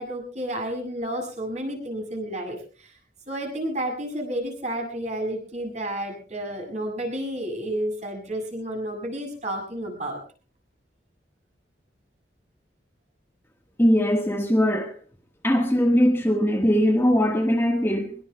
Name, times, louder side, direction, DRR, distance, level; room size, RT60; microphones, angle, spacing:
voice 1, 0.0-2.9 3.3-10.2, right 1 dB, 40° right, 7.5 m, -31 dB
voice 2, 13.8-15.0 15.4-18.1, equal, 15° left, 1.4 m, -20 dB
24.5 x 21.5 x 2.3 m
head